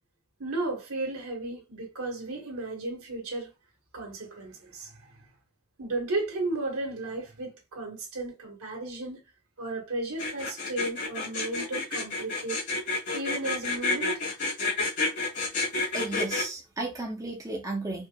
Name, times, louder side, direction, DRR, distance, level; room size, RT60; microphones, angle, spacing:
voice 1, 0.4-3.5 3.9-4.9 5.8-9.2 9.6-12.6 13.1-14.1, right 2 dB, 80° right, 1.7 m, -34 dB
sound 1, 10.2-16.4, left 3 dB, 55° left, 2.0 m, -29 dB
voice 2, 15.9-18.1, right 2 dB, 15° right, 0.7 m, -33 dB
4.6 x 2.9 x 2.2 m
head